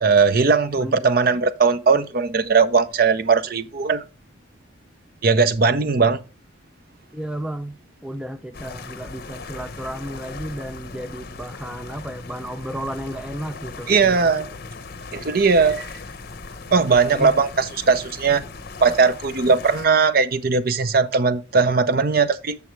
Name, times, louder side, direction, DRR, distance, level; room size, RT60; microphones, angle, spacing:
voice 1, 0.0-4.0 5.2-6.2 13.9-14.5 15.1-15.9 16.7-18.4 18.8-22.6, right 4 dB, 50° right, 0.6 m, -19 dB
voice 2, 0.8-1.1 7.1-14.3 17.1-17.4, right 1 dB, 5° right, 0.3 m, -33 dB
lake wavelet, 8.5-19.9, left 3 dB, 50° left, 0.7 m, -38 dB
7.6 x 7.0 x 3.1 m
head